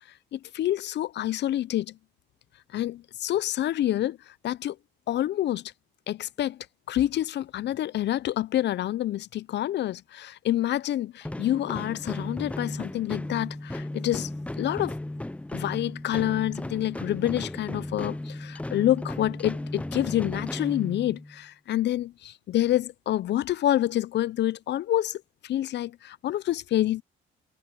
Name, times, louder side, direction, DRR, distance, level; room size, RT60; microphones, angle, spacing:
voice 1, 0.3-1.9 2.7-4.2 4.4-4.8 5.1-5.6 6.1-6.6 6.9-14.3 14.6-15.0 15.5-27.0, left 13 dB, 60° left, 0.5 m, -27 dB
sound 1, 11.2-21.4, left 1 dB, 5° left, 0.5 m, -35 dB
cardioid pair, 90°, 20 cm